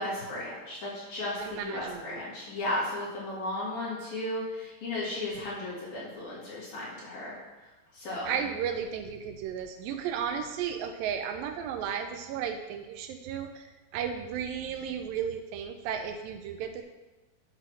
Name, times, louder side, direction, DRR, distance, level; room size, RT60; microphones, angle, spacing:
voice 1, 0.0-7.4 7.9-8.3, left 1 dB, 55° left, -8 dB, 3.9 m, -35 dB
voice 2, 1.4-2.2 8.3-16.8, right 8 dB, 80° right, 6 dB, 2.2 m, -34 dB
8.2 x 3.9 x 5.9 m, 1.1 s
omnidirectional pair, 4.2 m